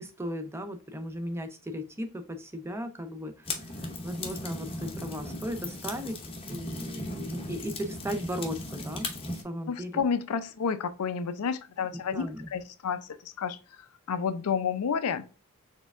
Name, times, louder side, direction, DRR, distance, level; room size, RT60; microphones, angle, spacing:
voice 1, 0.0-3.7 4.0-6.2 6.5-10.0 12.1-12.5, equal, 10° right, 0.5 m, -36 dB
sound 1, 3.5-9.4, left 2 dB, 25° left, 0.7 m, -37 dB
voice 2, 9.7-15.3, left 6 dB, 85° left, 0.4 m, -31 dB
4.3 x 3.4 x 2.4 m
head